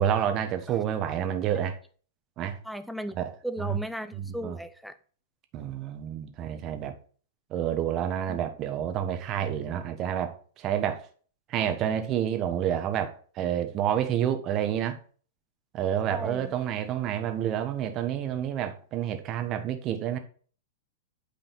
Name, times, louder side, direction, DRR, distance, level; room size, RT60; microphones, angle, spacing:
voice 1, 0.0-1.8 2.4-2.6 3.1-3.8 4.1-4.6 5.5-7.0 7.5-11.1 11.5-15.0 15.7-20.2, right 10 dB, 35° right, 1.3 m, -29 dB
voice 2, 2.6-3.2 3.4-4.9 16.1-16.5, equal, ahead, 0.7 m, -36 dB
9.0 x 5.0 x 4.2 m
figure-of-eight pair, 100°, 0 cm